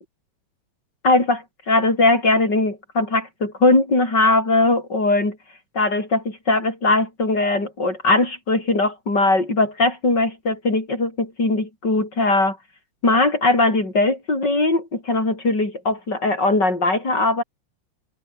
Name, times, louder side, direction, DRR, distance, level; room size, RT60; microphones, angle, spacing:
voice 1, 1.0-5.4 5.7-12.6 13.0-17.4, left 2 dB, 35° left, 8.4 m, -20 dB
open air
omnidirectional pair, 3.4 m